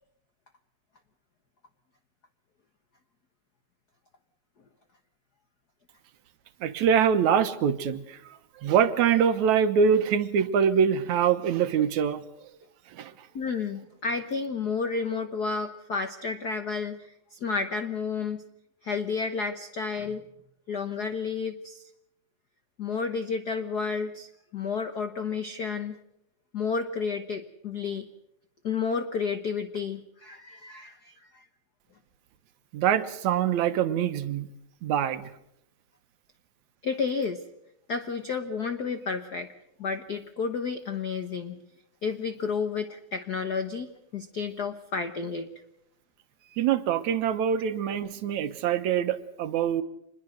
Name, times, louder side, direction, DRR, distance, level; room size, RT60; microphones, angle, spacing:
voice 1, 6.6-12.2 12.9-13.1 32.7-34.5 34.8-35.3 46.6-49.8, right 8 dB, 75° right, 10 dB, 2.4 m, -24 dB
voice 2, 13.3-18.4 18.8-20.2 20.7-21.9 22.8-26.0 26.5-28.1 28.6-31.4 36.8-37.4 37.9-39.5 39.8-41.6 42.0-45.5, left 5 dB, 80° left, 9 dB, 0.8 m, -31 dB
26.5 x 21.5 x 6.5 m, 0.81 s
omnidirectional pair, 3.5 m